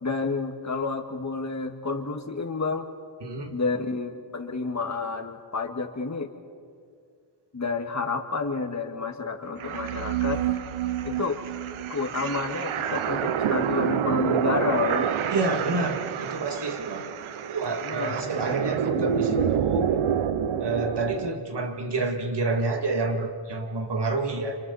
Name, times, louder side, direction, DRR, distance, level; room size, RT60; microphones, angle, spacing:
voice 1, 0.0-2.9 3.5-6.3 7.5-10.4 11.0-11.4 11.9-15.1 17.8-18.2 18.4-18.6 19.0-19.1, left 4 dB, 35° left, 5 dB, 1.8 m, -30 dB
voice 2, 3.2-3.6 15.3-17.1 17.4-19.9 20.6-24.6, right 3 dB, 55° right, 3 dB, 2.4 m, -29 dB
sound 1, 9.6-21.3, right 8 dB, 85° right, 0.8 m, -28 dB
30.0 x 26.5 x 4.2 m, 2.2 s
wide cardioid pair, 95°, 47 cm